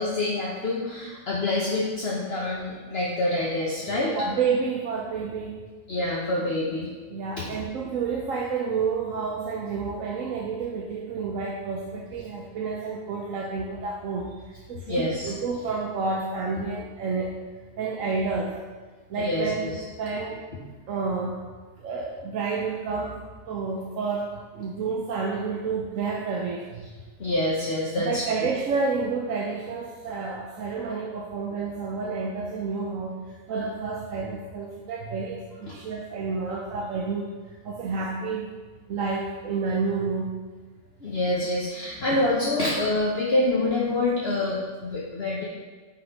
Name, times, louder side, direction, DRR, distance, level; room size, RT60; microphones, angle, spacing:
voice 1, 0.0-4.1 5.9-6.9 7.4-7.5 14.9-15.3 19.2-19.8 20.5-20.6 27.2-28.2 35.7-35.8 41.0-45.4, left 2 dB, 50° left, -4 dB, 1.2 m, -26 dB
voice 2, 4.1-5.6 7.1-17.4 17.8-18.5 19.1-19.6 20.0-20.4 20.9-21.4 21.8-26.9 28.0-33.1 33.5-37.3 37.6-38.5 38.9-40.3, right 4 dB, 75° right, 0 dB, 1.1 m, -29 dB
6.4 x 5.9 x 5.3 m, 1.4 s
omnidirectional pair, 1.4 m